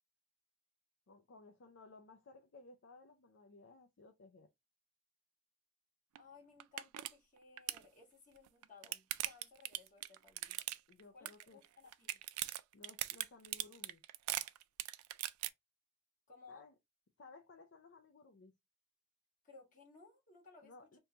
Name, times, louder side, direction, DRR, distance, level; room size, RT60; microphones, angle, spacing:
voice 1, 1.1-4.5 10.9-11.6 12.7-14.0 16.5-16.7 17.2-18.5 20.6-21.0, left 3 dB, 60° left, 0.5 m, -59 dB
voice 2, 6.2-10.6 11.1-12.2 16.3-16.7 19.4-21.0, left 4 dB, 35° left, 1.5 m, -60 dB
sound 1, 6.2-6.3 6.6-7.1 7.4-7.8 8.5-11.0 11.3-11.7 11.9-15.5, right 15 dB, 85° right, 0.3 m, -40 dB
3.1 x 2.2 x 3.8 m
head